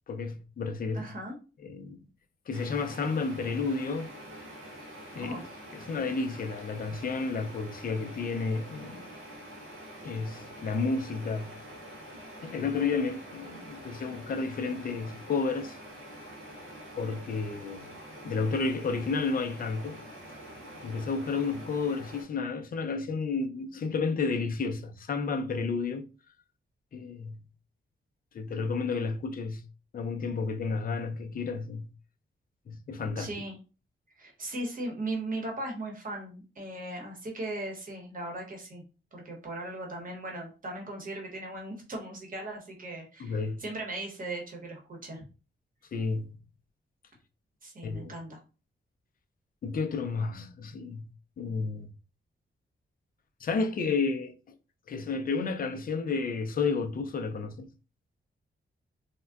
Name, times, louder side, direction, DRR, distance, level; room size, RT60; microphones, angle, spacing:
voice 1, 0.1-1.1 1.6-2.1 2.5-4.1 5.1-5.4 5.7-9.1 10.0-11.5 12.4-15.8 17.0-17.8 18.2-20.0 20.8-26.0 26.9-27.4 28.3-29.6 29.9-31.9 32.7-33.3 43.2-43.6 45.9-46.4 47.8-48.1 49.6-51.1 51.4-51.9 53.4-54.3 54.9-57.7, left 4 dB, 45° left, 0.4 m, -31 dB
voice 2, 0.9-1.4 5.1-5.4 33.2-33.6 34.2-38.8 39.1-45.2 47.6-48.4, right 2 dB, 40° right, 0.9 m, -38 dB
sound 1, 2.5-22.2, equal, 75° right, 0.8 m, -46 dB
3.5 x 2.1 x 2.3 m
wide cardioid pair, 155°, 21 cm